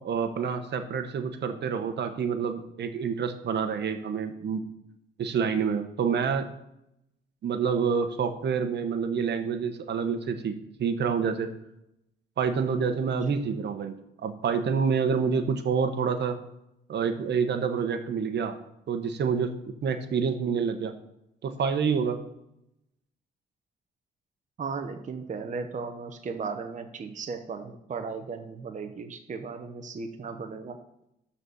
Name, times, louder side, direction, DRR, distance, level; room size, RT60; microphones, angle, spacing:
voice 1, 0.0-4.6 5.2-6.5 7.4-11.5 12.4-13.9 14.2-16.4 16.9-18.6 18.9-19.5 19.8-20.9 21.4-22.2, right 6 dB, 60° right, 8 dB, 1.2 m, -27 dB
voice 2, 24.6-30.8, right 5 dB, 40° right, 5 dB, 1.0 m, -36 dB
12.5 x 4.3 x 7.0 m, 0.84 s
cardioid pair, 90°, 20 cm